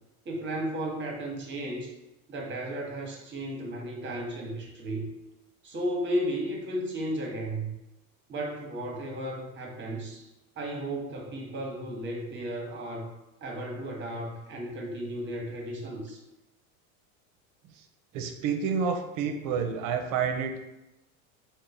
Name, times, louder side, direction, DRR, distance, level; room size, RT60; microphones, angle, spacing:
voice 1, 0.2-1.9 2.3-5.1 5.6-7.7 8.3-10.3 10.6-13.1 13.4-16.2, right 1 dB, 25° right, 1 dB, 0.9 m, -34 dB
voice 2, 18.1-20.6, right 6 dB, 50° right, 5 dB, 0.6 m, -29 dB
3.1 x 2.1 x 3.9 m, 0.93 s
hypercardioid pair, 95°, 42 cm